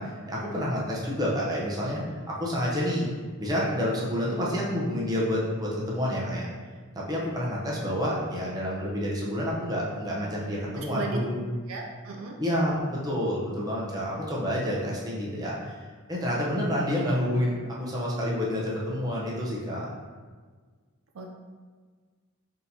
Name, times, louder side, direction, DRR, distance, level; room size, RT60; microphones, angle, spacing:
voice 1, 0.0-3.1 3.4-6.5 6.9-11.3 12.4-15.7 16.1-19.9, equal, 20° right, -5 dB, 0.7 m, -29 dB
voice 2, 10.7-11.2 11.7-12.4 21.1-21.3, right 4 dB, 65° right, 1 dB, 0.4 m, -36 dB
4.2 x 3.7 x 2.8 m, 1.5 s
head